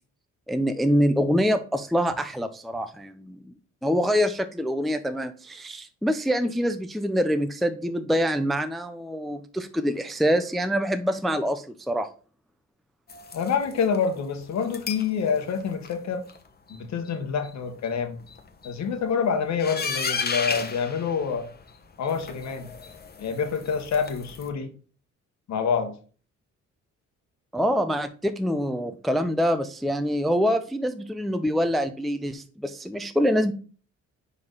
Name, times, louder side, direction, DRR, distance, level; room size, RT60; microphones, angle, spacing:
voice 1, 0.5-3.5 3.8-12.1 27.5-33.5, equal, ahead, 0.5 m, -25 dB
sound 1, 13.1-14.0 14.6-15.1 15.5-15.9 16.3-16.4 16.7-16.8 17.1-17.2 17.4-17.5 17.8-17.9 18.2-18.8 19.6-21.7 22.0-24.5, left 5 dB, 30° left, 1.1 m, -34 dB
voice 2, 13.3-16.2 16.7-18.2 18.6-21.5 22.0-22.7 23.2-24.7 25.5-25.9, left 6 dB, 65° left, 1.3 m, -27 dB
4.9 x 4.1 x 5.4 m
cardioid pair, 90°, 30 cm